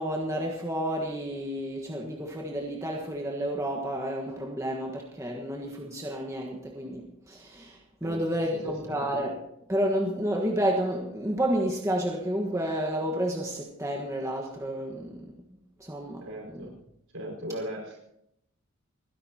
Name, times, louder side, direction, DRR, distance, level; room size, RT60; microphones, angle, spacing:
voice 1, 0.0-9.4 9.7-15.3 15.8-16.7, equal, 15° right, -1 dB, 1.4 m, -30 dB
voice 2, 8.6-9.0 16.2-16.7 17.1-18.0, right 1 dB, 70° right, -1 dB, 5.3 m, -38 dB
29.5 x 11.0 x 2.9 m, 0.78 s
head